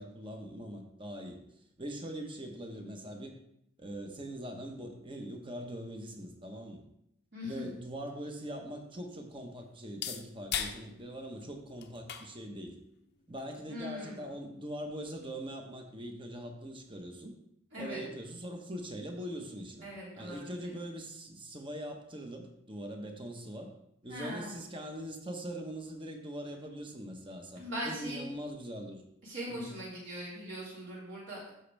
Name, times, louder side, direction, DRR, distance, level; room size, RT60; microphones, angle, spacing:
voice 1, 0.0-1.4 1.8-3.3 3.8-6.8 7.4-12.8 13.3-17.3 17.8-19.9 20.1-23.7 24.0-29.0 29.5-29.7, right 1 dB, 25° right, 3 dB, 1.1 m, -42 dB
voice 2, 7.3-7.6 13.7-14.2 17.7-18.0 19.8-20.8 24.1-24.5 27.6-28.2 29.2-31.5, equal, 60° right, -7 dB, 3.7 m, -40 dB
sound 1, 8.1-15.5, left 8 dB, 50° left, 0.7 m, -44 dB
10.5 x 7.2 x 3.4 m, 0.76 s
head